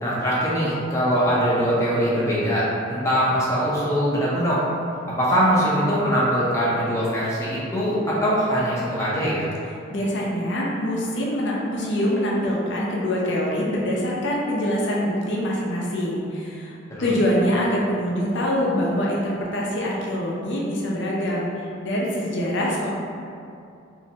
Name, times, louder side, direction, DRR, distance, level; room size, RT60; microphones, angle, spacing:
voice 1, 0.0-4.6 5.2-9.4 16.9-17.1, equal, 15° left, -8 dB, 0.6 m, -22 dB
voice 2, 9.9-16.7 17.0-22.9, equal, 65° left, -4 dB, 0.6 m, -24 dB
3.1 x 2.6 x 2.9 m, 2.5 s
head